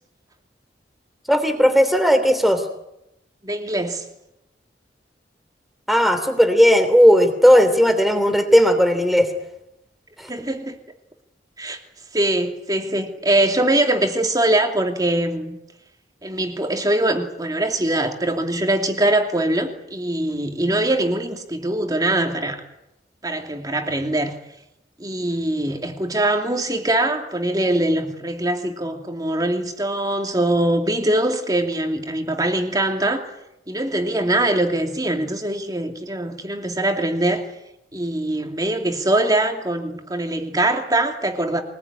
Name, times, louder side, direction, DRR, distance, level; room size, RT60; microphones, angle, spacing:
voice 1, 1.3-2.6 5.9-9.3 10.2-10.3, equal, ahead, 8 dB, 3.1 m, -16 dB
voice 2, 3.4-4.0 10.3-10.8 11.6-11.8 12.1-15.6 16.2-22.6 23.2-24.3 25.0-33.3 33.7-37.4 37.9-41.6, right 1 dB, 20° right, 4 dB, 2.8 m, -22 dB
24.0 x 20.5 x 9.8 m, 0.87 s
head